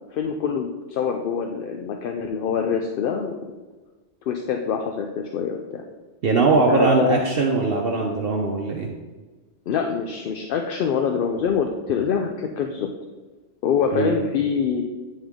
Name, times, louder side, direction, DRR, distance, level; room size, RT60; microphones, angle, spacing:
voice 1, 0.1-3.3 4.3-5.8 6.5-7.2 9.7-12.9 13.6-14.8, left 7 dB, 60° left, 3 dB, 0.6 m, -25 dB
voice 2, 6.2-8.9 13.9-14.1, right 3 dB, 60° right, 0 dB, 0.8 m, -20 dB
9.3 x 3.6 x 3.5 m, 1.3 s
omnidirectional pair, 1.2 m